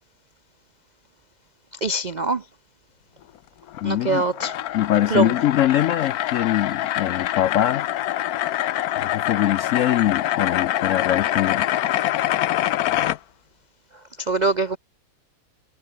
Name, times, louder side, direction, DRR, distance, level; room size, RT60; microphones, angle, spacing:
voice 1, 1.8-2.4 3.8-4.6 5.1-5.3 14.2-14.8, right 3 dB, 65° right, 0.4 m, -23 dB
sound 1, 3.7-13.2, left 13 dB, 65° left, 1.1 m, -25 dB
voice 2, 3.8-4.2 4.7-8.3 9.0-11.7, left 12 dB, 90° left, 0.6 m, -23 dB
omnidirectional pair, 2.0 m